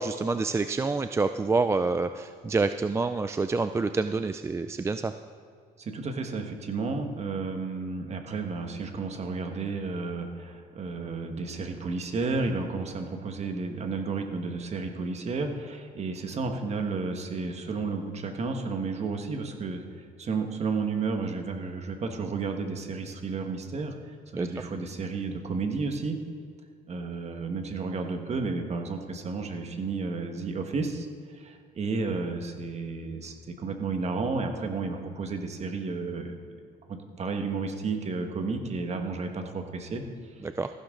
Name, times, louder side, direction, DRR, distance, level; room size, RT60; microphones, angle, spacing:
voice 1, 0.0-5.1 24.3-24.5 40.4-40.7, right 3 dB, 15° right, 9 dB, 0.3 m, -27 dB
voice 2, 5.8-26.2 26.9-36.3 36.9-40.4, right 4 dB, 40° right, 5 dB, 1.5 m, -32 dB
15.0 x 11.5 x 3.8 m, 2.2 s
cardioid pair, 110°, 17 cm